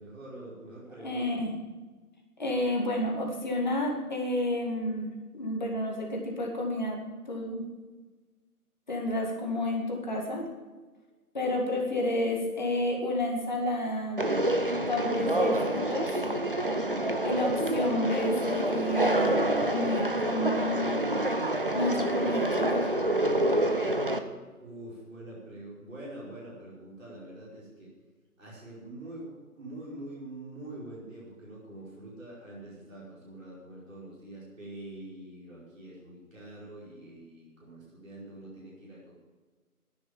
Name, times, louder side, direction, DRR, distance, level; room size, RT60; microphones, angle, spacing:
voice 1, 0.0-1.4 17.0-17.4 24.6-27.9 28.4-39.1, right 1 dB, 55° right, -7 dB, 5.4 m, -45 dB
voice 2, 1.0-1.5 2.4-7.0 7.3-7.6 8.9-10.5 11.3-14.2 14.9-16.1 17.2-21.0 21.7-23.0, left 1 dB, 30° left, 0 dB, 2.0 m, -30 dB
Conversation, 14.2-24.2, right 1 dB, 35° right, 0.8 m, -27 dB
12.0 x 10.5 x 7.3 m, 1.3 s
figure-of-eight pair, 165°, 46 cm